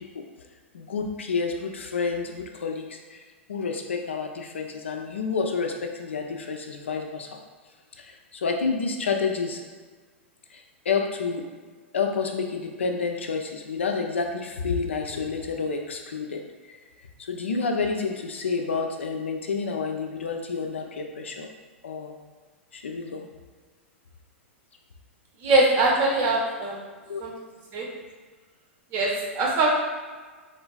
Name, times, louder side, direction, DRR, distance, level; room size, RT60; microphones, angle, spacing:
voice 1, 0.7-3.2 3.5-7.4 8.0-9.6 10.5-11.4 11.9-16.4 16.7-16.8 17.2-21.5 21.8-22.2 22.7-23.3 27.1-27.2, left 5 dB, 70° left, 3 dB, 0.3 m, -29 dB
voice 2, 25.4-26.8 27.2-27.3 27.7-27.9 28.9-29.7, right 2 dB, 35° right, -2 dB, 0.7 m, -22 dB
3.7 x 2.3 x 2.3 m, 1.5 s
figure-of-eight pair, 100°, 7 cm